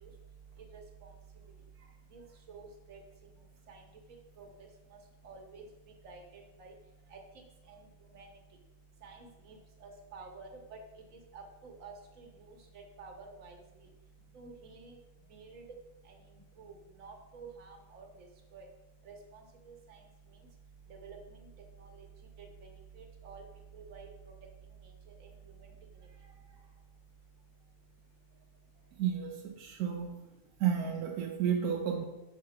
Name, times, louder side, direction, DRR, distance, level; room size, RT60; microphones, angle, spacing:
voice 1, 2.5-3.0 3.7-3.8 4.4-4.5 5.2-5.6 6.0-6.7 7.1-7.2 8.1-8.3 9.0-10.8 11.3-12.6 13.0-13.6 14.3-15.0 15.3-15.6 16.6-16.7 17.0-18.1 18.5-18.7 19.1-19.7 21.0-21.2 21.8-21.9 23.0-23.4 23.7-24.1, right 4 dB, 60° right, 2 dB, 1.5 m, -50 dB
voice 2, 29.0-30.1 30.6-32.0, right 8 dB, 85° right, 2 dB, 1.1 m, -32 dB
5.1 x 4.6 x 5.8 m, 1.0 s
omnidirectional pair, 1.6 m